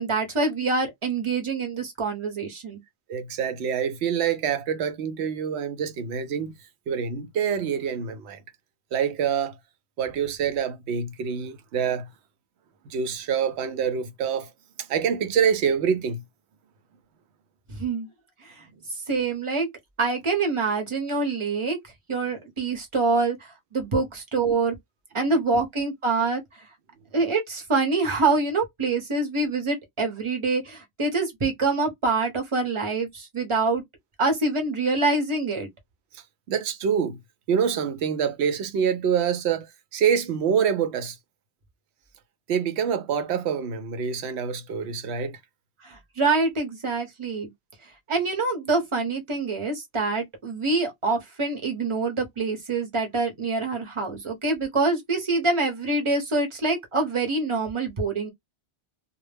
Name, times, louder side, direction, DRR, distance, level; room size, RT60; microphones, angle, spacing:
voice 1, 0.0-2.8 17.7-18.1 18.4-19.7 20.0-21.8 22.1-24.8 25.1-26.7 27.1-33.8 34.2-35.7 45.8-47.5 47.8-58.3, right 3 dB, 30° right, 0.8 m, -25 dB
voice 2, 3.1-6.6 6.9-8.4 8.9-9.6 10.0-12.1 12.9-14.5 14.8-16.2 36.5-37.2 37.5-41.2 42.5-45.4, right 7 dB, 75° right, 0.8 m, -26 dB
2.2 x 2.0 x 3.2 m
omnidirectional pair, 1.1 m